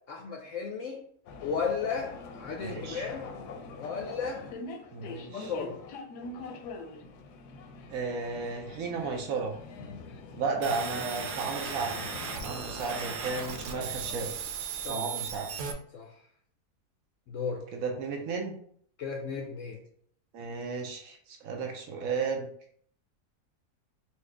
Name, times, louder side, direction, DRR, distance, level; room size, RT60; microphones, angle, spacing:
voice 1, 0.1-1.0 1.4-3.3 3.7-4.4 5.3-5.8 14.8-15.1 15.9-16.1 17.3-17.6 19.0-19.8, left 5 dB, 65° left, 1 dB, 0.8 m, -34 dB
sound 1, 1.3-14.4, left 3 dB, 85° left, 1.2 m, -44 dB
voice 2, 2.6-3.1 4.9-5.5 7.9-9.6 10.3-12.0 12.4-14.3 14.8-15.5 17.7-18.5 20.3-22.5, right 4 dB, 65° right, 2 dB, 1.0 m, -34 dB
sound 2, 10.6-15.7, right 6 dB, 90° right, 1.2 m, -37 dB
4.3 x 2.3 x 3.3 m, 0.62 s
omnidirectional pair, 1.7 m